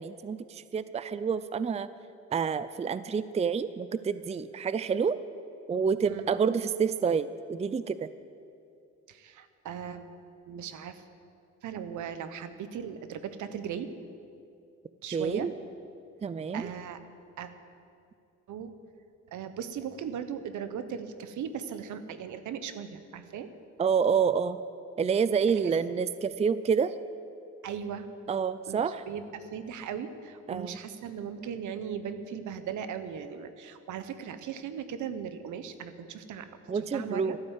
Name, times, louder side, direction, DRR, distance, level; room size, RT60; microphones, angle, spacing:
voice 1, 0.0-1.9 2.3-5.2 5.7-8.1 15.1-15.5 16.2-16.7 23.8-24.6 25.0-26.9 28.3-29.0 30.5-30.8 36.7-37.4, right 6 dB, 20° right, 14 dB, 0.5 m, -28 dB
voice 2, 9.1-10.0 10.5-11.0 11.6-13.9 15.0-15.5 16.5-17.0 17.4-17.5 18.5-18.7 19.3-23.5 25.6-25.7 27.6-28.1 28.7-37.4, right 8 dB, 75° right, 11 dB, 1.1 m, -38 dB
13.0 x 12.0 x 8.2 m, 2.5 s
cardioid pair, 90°, 30 cm